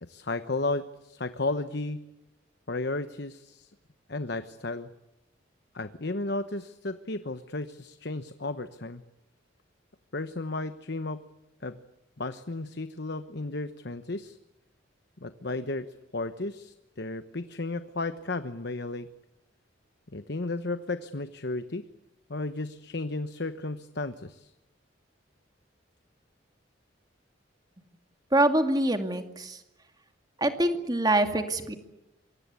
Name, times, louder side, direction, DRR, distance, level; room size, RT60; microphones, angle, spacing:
voice 1, 0.0-2.0 2.7-3.7 4.1-4.9 5.7-9.0 10.1-11.2 11.6-11.8 12.2-14.4 15.2-15.9 16.1-19.1 20.1-21.9 22.3-24.5, left 2 dB, 55° left, 11 dB, 1.1 m, -33 dB
voice 2, 28.3-29.6 30.4-31.8, right 1 dB, 20° right, 6 dB, 2.3 m, -25 dB
27.5 x 24.0 x 8.3 m, 0.92 s
head